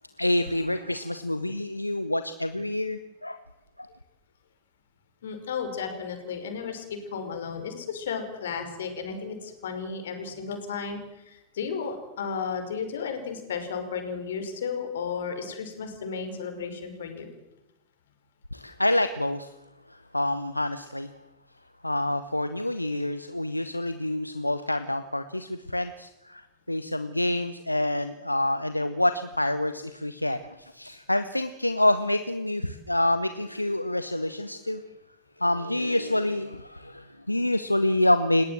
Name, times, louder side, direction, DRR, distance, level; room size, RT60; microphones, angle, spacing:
voice 1, 0.2-3.4 3.8-3.9 18.5-19.5 19.9-21.1 21.8-34.8 35.4-38.4, left 1 dB, 85° left, 11 dB, 1.0 m, -27 dB
voice 2, 5.2-17.3, left 6 dB, 60° left, 6 dB, 5.4 m, -34 dB
29.5 x 18.0 x 7.8 m, 0.94 s
figure-of-eight pair, 90°, 0 cm